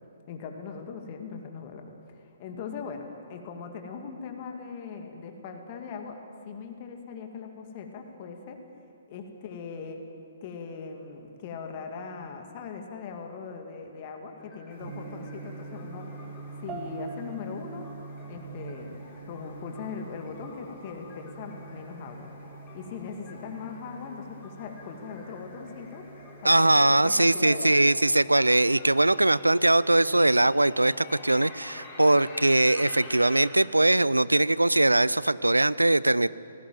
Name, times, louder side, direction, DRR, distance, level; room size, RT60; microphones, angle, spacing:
voice 1, 0.3-6.2 6.5-8.6 9.1-10.0 10.4-16.1 16.6-17.9 18.3-22.3 22.7-26.1 26.4-27.8, left 5 dB, 35° left, 4 dB, 2.3 m, -40 dB
sound 1, 14.4-33.5, left 3 dB, 20° left, 4.7 m, -48 dB
Gong, 14.7-33.4, right 4 dB, 45° right, 5.8 m, -46 dB
sound 2, 16.7-26.3, right 7 dB, 20° right, 1.6 m, -50 dB
voice 2, 26.4-36.3, right 2 dB, 85° right, 19 dB, 0.5 m, -21 dB
19.5 x 17.5 x 9.2 m, 2.6 s
figure-of-eight pair, 125°, 0 cm